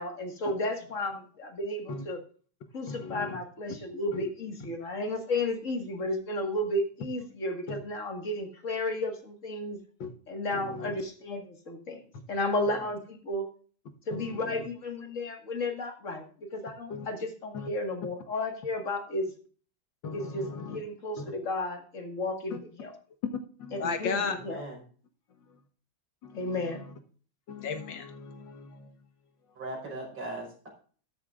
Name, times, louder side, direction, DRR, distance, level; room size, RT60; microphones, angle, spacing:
voice 1, 0.0-2.2 2.7-9.8 10.3-12.0 12.3-13.5 14.1-16.2 16.5-19.3 20.1-22.9 23.7-24.6 26.3-26.8, left 1 dB, 40° left, 2.0 m, -33 dB
voice 2, 2.9-3.4 4.1-4.2 7.7-7.8 10.0-10.1 10.5-10.9 14.1-14.7 16.9-17.1 17.5-17.7 20.0-20.8 21.2-21.3 23.6-24.4 26.2-26.6 27.5-28.9, left 5 dB, 75° left, 2.0 m, -36 dB
voice 3, 24.3-24.8 29.6-30.7, right 2 dB, 75° right, 5.4 m, -39 dB
13.5 x 10.0 x 2.4 m
omnidirectional pair, 2.1 m